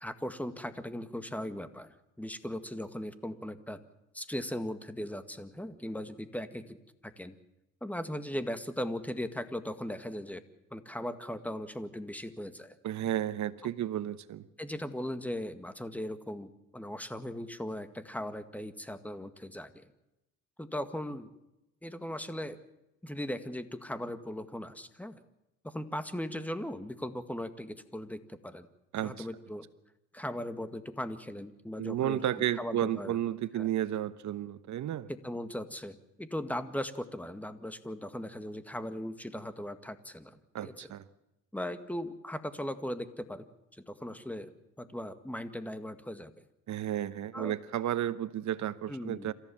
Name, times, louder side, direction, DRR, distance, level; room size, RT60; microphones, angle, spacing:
voice 1, 0.0-3.8 4.1-6.8 7.0-7.3 7.8-10.4 10.7-12.8 14.6-19.9 20.6-21.3 21.8-22.6 23.0-25.2 25.6-28.7 29.0-29.7 30.1-32.2 32.6-33.2 33.5-33.7 35.1-40.9 41.5-43.4 43.7-44.5 44.8-46.3 47.3-47.5 48.9-49.3, left 1 dB, 5° left, 10 dB, 1.9 m, -38 dB
voice 2, 12.8-14.4 28.9-29.3 31.8-35.1 40.5-41.0 46.7-49.3, right 11 dB, 70° right, 14 dB, 1.2 m, -32 dB
27.5 x 15.0 x 7.2 m, 0.91 s
cardioid pair, 90°, 30 cm